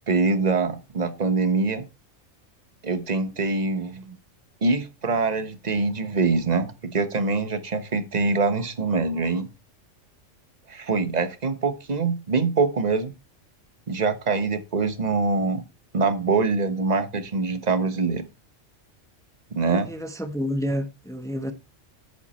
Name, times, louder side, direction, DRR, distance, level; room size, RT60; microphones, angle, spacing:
voice 1, 0.1-1.9 2.8-4.1 4.6-9.5 10.7-13.1 13.9-15.6 15.9-18.2 19.6-19.9, right 4 dB, 35° right, 1.2 m, -24 dB
voice 2, 19.7-21.5, equal, 5° left, 1.1 m, -29 dB
10.0 x 8.3 x 4.3 m
omnidirectional pair, 1.3 m